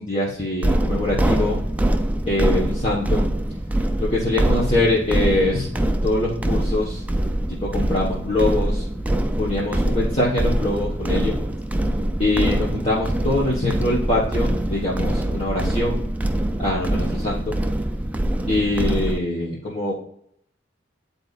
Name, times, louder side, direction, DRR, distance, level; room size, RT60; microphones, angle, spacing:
voice 1, 0.0-1.6 2.3-3.3 4.0-5.7 6.0-7.0 7.6-8.8 9.4-11.4 12.2-16.1 16.6-17.6 18.5-19.9, left 2 dB, 30° left, -6 dB, 1.3 m, -23 dB
sound 1, 0.6-19.2, right 1 dB, 10° right, 0.4 m, -24 dB
10.0 x 4.1 x 2.5 m, 0.69 s
head